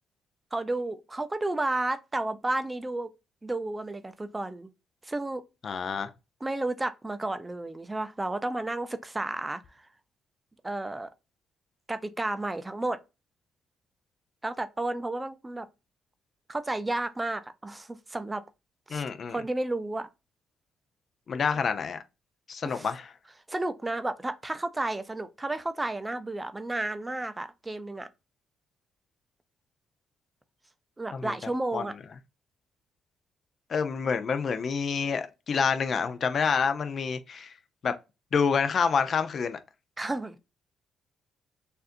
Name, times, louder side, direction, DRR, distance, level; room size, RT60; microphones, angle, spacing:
voice 1, 0.5-3.1 3.4-4.7 5.0-5.4 6.4-9.9 10.6-11.1 11.9-13.0 14.4-15.7 16.5-18.4 18.9-20.1 22.6-22.9 23.5-28.1 31.0-32.0 40.0-40.4, right 2 dB, 15° right, 0.5 m, -32 dB
voice 2, 5.6-6.1 18.9-19.4 21.3-22.0 22.5-23.1 31.1-31.3 31.7-31.8 33.7-37.5 37.8-37.9 38.3-39.6, left 6 dB, 50° left, 0.6 m, -27 dB
6.6 x 2.6 x 2.6 m
cardioid pair, 90°, 0 cm